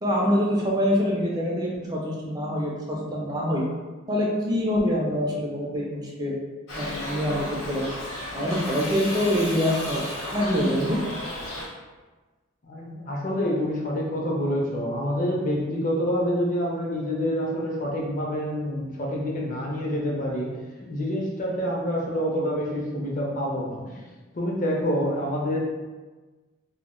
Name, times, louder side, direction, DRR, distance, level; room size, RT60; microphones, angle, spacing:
voice 1, 0.0-3.6 4.1-6.3 6.7-7.9 8.3-10.0 10.3-11.0, equal, 20° right, -3 dB, 0.4 m, -25 dB
Shout / Livestock farm animals working animals, 6.7-11.7, left 1 dB, 80° left, 0.7 m, -34 dB
voice 2, 12.6-20.5 20.8-24.0 24.3-25.6, equal, 40° left, -2 dB, 0.5 m, -27 dB
2.1 x 2.0 x 3.6 m, 1.3 s
head